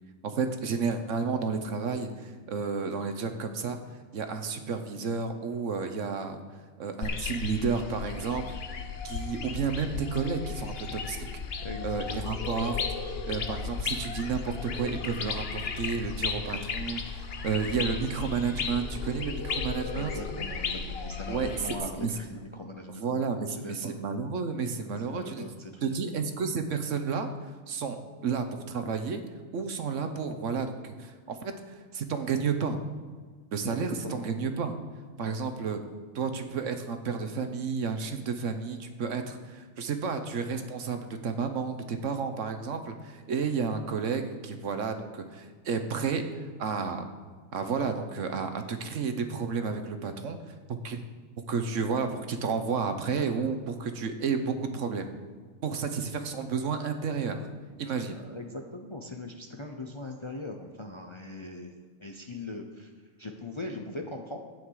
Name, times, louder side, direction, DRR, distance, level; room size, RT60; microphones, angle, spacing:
voice 1, 0.2-3.8 4.1-6.4 6.8-8.6 9.0-11.3 11.8-12.8 13.3-20.1 21.3-22.1 23.0-25.5 25.8-27.3 27.7-29.2 29.5-32.8 33.5-34.7 35.2-35.8 36.1-47.1 47.5-51.0 51.5-55.1 55.6-57.4 57.8-58.2, right 5 dB, 65° right, 7 dB, 1.2 m, -31 dB
sound 1, 7.0-21.7, left 5 dB, 50° left, 1.0 m, -35 dB
voice 2, 11.6-12.7 19.9-23.0 23.3-23.9 25.0-26.0 33.7-34.3 35.2-35.3 58.1-62.9 63.2-64.4, left 2 dB, 30° left, 3 dB, 0.7 m, -40 dB
13.0 x 9.3 x 4.8 m, 1.5 s
omnidirectional pair, 1.4 m